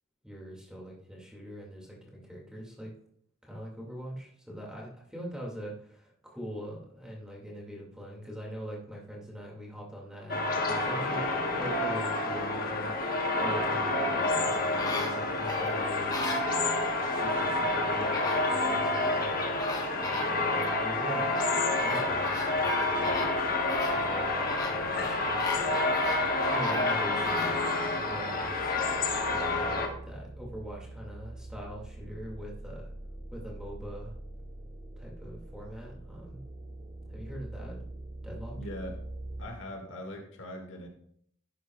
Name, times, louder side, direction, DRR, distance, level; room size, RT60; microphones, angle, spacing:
voice 1, 0.2-2.9 3.4-12.9 13.4-16.3 17.1-19.5 19.9-21.3 21.8-23.4 23.9-25.8 26.5-27.7 28.0-28.8 29.3-32.9 33.3-34.2 35.0-36.4 37.1-37.8 38.2-38.6, equal, 5° right, -3 dB, 2.2 m, -42 dB
sound 1, 10.3-29.9, left 2 dB, 45° left, 1.3 m, -29 dB
sound 2, 14.1-17.0 17.8-17.9 18.1-19.3 19.6-20.8 21.3-27.6 28.1-28.2, left 2 dB, 20° left, 1.3 m, -38 dB
sound 3, 22.1-39.5, right 1 dB, 45° right, 1.9 m, -45 dB
voice 2, 38.6-39.0 39.4-40.9, left 1 dB, 65° left, 1 dB, 2.1 m, -41 dB
11.5 x 9.2 x 2.4 m, 0.64 s
head